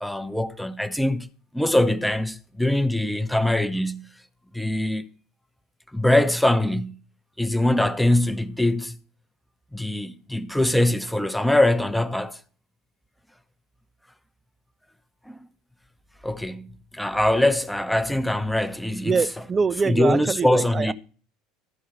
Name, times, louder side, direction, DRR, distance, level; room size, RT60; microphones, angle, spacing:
voice 1, 0.0-1.3 1.5-4.1 4.5-5.0 5.9-7.0 7.4-9.0 9.7-12.4 15.3-15.4 16.2-19.2 19.9-20.9, left 1 dB, 5° left, 0.7 m, -23 dB
voice 2, 19.0-20.9, right 5 dB, 25° right, 0.4 m, -24 dB
13.5 x 5.5 x 6.5 m
figure-of-eight pair, 65°, 0 cm